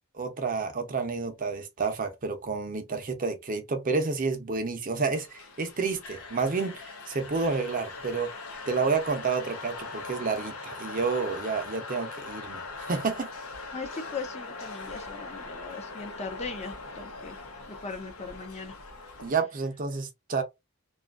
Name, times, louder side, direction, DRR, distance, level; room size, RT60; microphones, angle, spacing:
voice 1, 0.1-8.3 8.7-13.3 19.2-20.4, right 4 dB, 40° right, 0.6 m, -30 dB
sound 1, 5.1-19.3, left 3 dB, 85° left, 0.8 m, -41 dB
voice 2, 13.7-17.4 17.8-18.7, left 4 dB, 30° left, 0.5 m, -39 dB
2.6 x 2.4 x 2.4 m
head